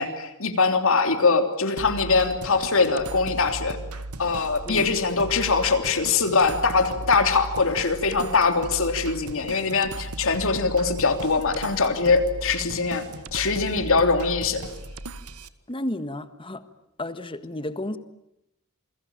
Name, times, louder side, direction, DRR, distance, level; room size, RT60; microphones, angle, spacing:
voice 1, 0.0-3.8 4.2-13.0 13.3-14.6, left 4 dB, 65° left, 7 dB, 3.2 m, -22 dB
sound 1, 1.8-15.5, right 2 dB, 75° right, 1.5 m, -37 dB
voice 2, 15.7-16.6 17.0-18.0, left 1 dB, 25° left, 11 dB, 1.6 m, -32 dB
28.5 x 22.0 x 9.1 m, 0.84 s
head